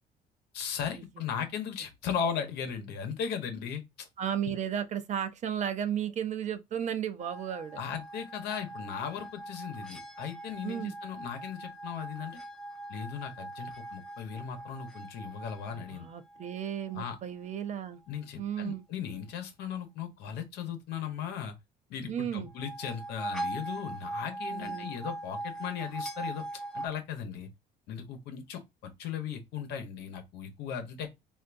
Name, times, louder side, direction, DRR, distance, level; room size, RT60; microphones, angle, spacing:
voice 1, 0.5-4.1 7.8-12.4 12.9-16.1 16.9-17.2 18.1-21.6 21.9-26.4 26.7-27.5 27.9-31.1, left 7 dB, 80° left, 1.0 m, -37 dB
voice 2, 4.2-7.8 10.6-10.9 15.9-18.0 18.4-18.8 22.1-22.5 24.5-24.9, right 9 dB, 45° right, 0.5 m, -34 dB
sound 1, 7.2-17.1 22.5-26.9, right 2 dB, 5° left, 0.6 m, -41 dB
3.5 x 2.6 x 2.5 m
cardioid pair, 110°, 17 cm